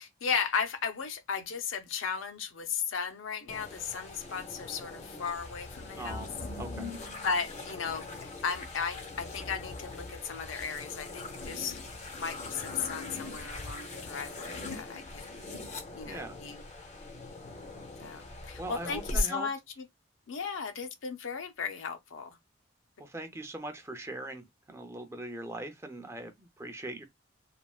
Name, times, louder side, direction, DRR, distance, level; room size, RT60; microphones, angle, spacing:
voice 1, 0.0-6.3 7.2-8.1 8.4-11.8 12.2-15.2 15.9-16.6 18.0-19.9 20.3-22.4, left 6 dB, 85° left, 0.6 m, -35 dB
sound 1, 3.5-19.2, left 2 dB, 35° left, 0.5 m, -41 dB
voice 2, 5.9-6.3 6.6-6.9 16.0-16.4 18.6-19.5 23.0-27.0, right 1 dB, 15° right, 0.5 m, -41 dB
3.3 x 2.3 x 2.3 m
head